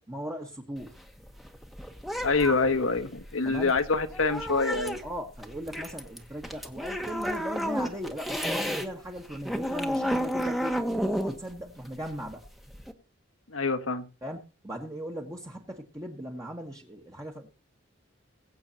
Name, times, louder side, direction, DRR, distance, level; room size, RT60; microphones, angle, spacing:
voice 1, 0.1-1.0 3.4-3.8 5.0-12.4 14.2-17.5, equal, 15° right, 0 dB, 1.4 m, -38 dB
sound 1, 0.8-8.9 9.2-12.9, equal, ahead, 1.2 m, -32 dB
voice 2, 2.2-5.0 13.5-14.1, left 3 dB, 85° left, 8 dB, 1.5 m, -26 dB
21.5 x 8.1 x 2.8 m, 0.32 s
head